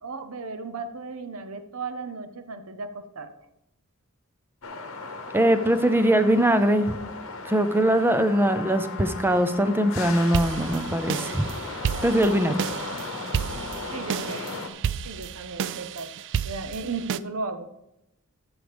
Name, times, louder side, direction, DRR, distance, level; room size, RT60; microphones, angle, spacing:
voice 1, 0.0-3.3 13.9-14.6 15.0-16.1 16.4-17.7, right 4 dB, 85° right, 9 dB, 0.8 m, -35 dB
sound 1, 4.6-14.7, left 3 dB, 70° left, 1.0 m, -36 dB
voice 2, 5.3-7.0 7.5-11.5 12.0-12.6, right 1 dB, 10° right, 10 dB, 0.5 m, -21 dB
sound 2, 10.2-17.2, right 8 dB, 60° right, 0.3 m, -32 dB
14.0 x 6.2 x 3.5 m, 0.86 s
head